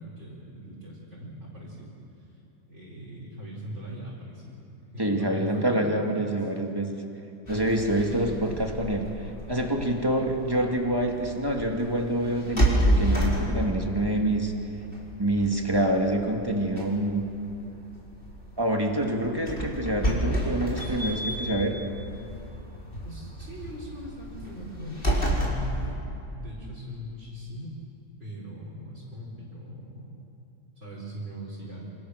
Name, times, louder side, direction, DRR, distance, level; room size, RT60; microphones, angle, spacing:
voice 1, 0.0-1.9 2.7-4.6 4.9-6.5 7.9-8.6 23.0-26.0 26.3-27.7 28.2-30.3 30.7-31.9, equal, 40° right, -7 dB, 5.0 m, -40 dB
voice 2, 5.0-6.9 7.5-14.5 15.2-17.2 18.6-21.8, right 1 dB, 15° right, 1 dB, 2.4 m, -26 dB
sound 1, 7.5-25.9, equal, 30° left, 5.1 m, -31 dB
27.5 x 27.5 x 6.6 m, 2.8 s
omnidirectional pair, 1.9 m